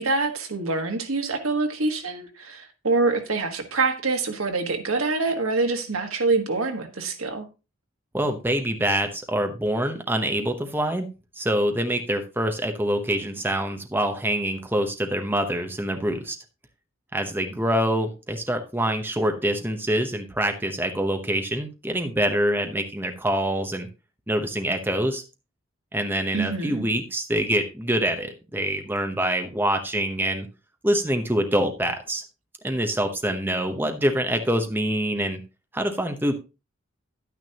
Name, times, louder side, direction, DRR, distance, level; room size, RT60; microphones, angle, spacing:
voice 1, 0.0-7.5 26.3-26.9, right 3 dB, 90° right, 1.4 m, -25 dB
voice 2, 8.1-11.1 11.4-16.4 17.1-23.9 24.3-25.2 25.9-30.5 30.8-32.2 32.6-35.4 35.7-36.3, right 1 dB, 10° right, 0.8 m, -25 dB
10.5 x 9.3 x 2.9 m
head